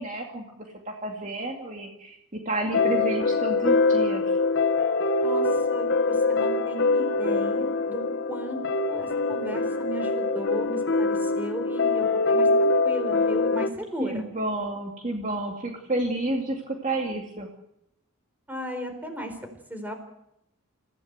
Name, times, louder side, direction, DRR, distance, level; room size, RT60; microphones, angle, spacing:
voice 1, 0.0-4.4 14.0-17.5, right 2 dB, 35° right, 1 dB, 2.4 m, -30 dB
sound 1, 2.7-13.7, left 3 dB, 55° left, 1.0 m, -24 dB
voice 2, 5.2-8.0 8.3-8.6 8.9-14.2 18.5-19.4 19.7-19.9, right 1 dB, 10° right, 6 dB, 4.1 m, -36 dB
27.5 x 16.0 x 8.1 m, 0.83 s
head